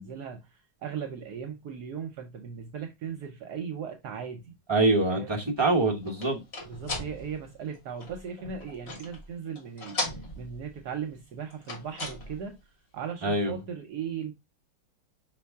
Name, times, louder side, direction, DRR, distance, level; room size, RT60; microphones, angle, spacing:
voice 1, 0.0-4.5 5.1-5.4 6.7-12.6 12.9-14.3, right 7 dB, 70° right, 1.2 m, -38 dB
voice 2, 4.7-6.4 13.2-13.6, right 2 dB, 25° right, 0.5 m, -24 dB
sound 1, 5.6-9.3 9.6-10.8 11.5-12.5, left 2 dB, 35° left, 1.7 m, -38 dB
5.3 x 2.9 x 3.4 m
omnidirectional pair, 1.9 m